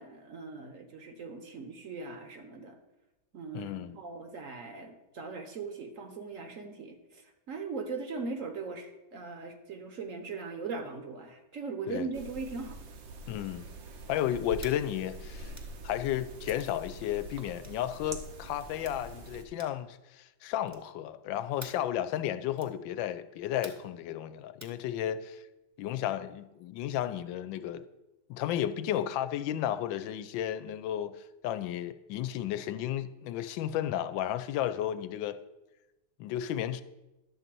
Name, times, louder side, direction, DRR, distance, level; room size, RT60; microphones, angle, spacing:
voice 1, 0.0-2.8 3.3-12.8, right 4 dB, 55° right, 1.1 m, -40 dB
voice 2, 3.5-4.0 11.9-12.1 13.3-13.6 14.1-15.5 15.8-25.4 25.8-27.8 28.3-35.4 36.2-36.8, left 11 dB, 85° left, 1.3 m, -33 dB
sound 1, 12.1-19.5, right 2 dB, 80° right, 1.7 m, -45 dB
sound 2, 14.6-14.8 15.5-15.7 16.5-16.8 17.6-17.8 18.6-19.0 19.5-19.9 20.6-20.9 21.6-21.9 22.5-22.8 23.6-23.9 24.6-24.8, right 1 dB, 15° right, 0.5 m, -49 dB
11.0 x 4.0 x 7.5 m
omnidirectional pair, 2.0 m